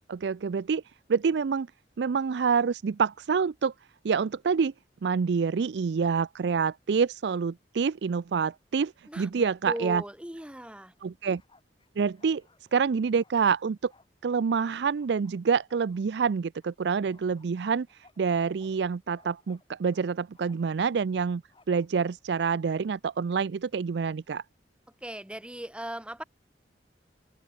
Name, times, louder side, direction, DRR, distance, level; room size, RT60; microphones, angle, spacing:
voice 1, 0.1-0.8 1.1-1.7 2.0-3.7 4.0-4.7 5.0-10.0 11.0-11.4 12.0-12.4 12.7-13.9 14.2-21.4 21.7-24.4, right 5 dB, 70° right, 0.4 m, -27 dB
voice 2, 9.1-10.9 25.0-26.2, right 1 dB, 5° right, 1.7 m, -38 dB
Bark, 9.6-10.2 10.4-14.5 14.9-16.7 17.1-20.1 20.3-20.8 21.5-22.4, left 3 dB, 30° left, 6.8 m, -63 dB
open air
head